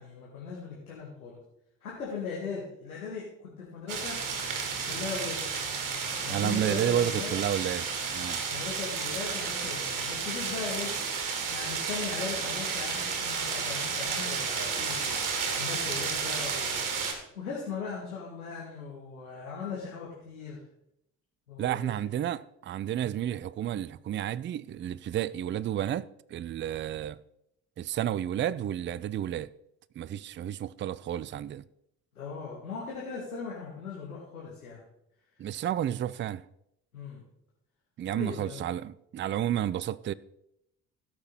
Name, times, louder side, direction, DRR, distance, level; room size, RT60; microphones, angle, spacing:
voice 1, 0.0-1.4 1.8-4.2 4.9-5.4 6.2-7.3 8.5-10.9 11.5-15.2 15.6-16.8 17.4-20.6 21.5-22.3 32.2-34.8 36.9-37.2 38.1-38.6, left 5 dB, 90° left, 1.9 m, -39 dB
sound 1, 3.9-17.1, right 5 dB, 50° right, 2.5 m, -32 dB
voice 2, 6.3-8.4 21.6-27.2 27.8-29.5 30.0-31.6 35.4-36.4 38.0-40.1, right 11 dB, 30° right, 0.4 m, -31 dB
16.5 x 6.1 x 4.1 m
figure-of-eight pair, 50°, 42 cm